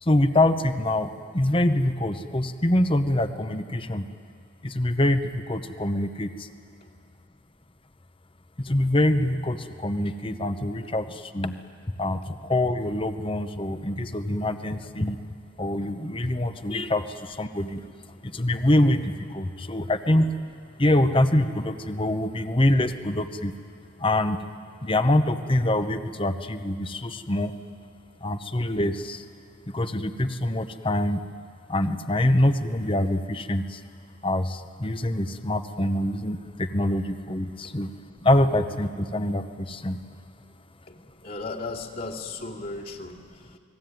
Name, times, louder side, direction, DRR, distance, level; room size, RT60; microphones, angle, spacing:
voice 1, 0.0-4.0 4.6-6.5 8.6-11.5 12.0-15.2 15.6-17.8 18.2-20.3 20.8-23.5 24.0-24.4 24.8-27.5 28.2-29.2 29.7-31.2 31.7-33.8 34.2-37.9 38.2-40.0, left 1 dB, 25° left, 10 dB, 1.0 m, -25 dB
voice 2, 40.9-43.6, left 3 dB, 50° left, -2 dB, 2.6 m, -36 dB
29.0 x 20.5 x 9.4 m, 2.3 s
head